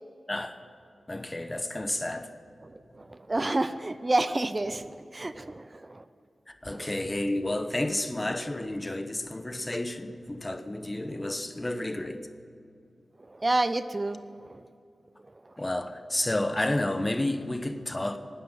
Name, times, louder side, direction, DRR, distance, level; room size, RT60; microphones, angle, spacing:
voice 1, 1.1-2.3 6.5-12.2 15.6-18.2, left 1 dB, 25° left, 1.1 m, -31 dB
voice 2, 2.7-6.0 6.7-6.9 13.3-14.7, right 2 dB, 35° right, 0.5 m, -30 dB
12.5 x 9.3 x 9.0 m
cardioid pair, 50°, 0 cm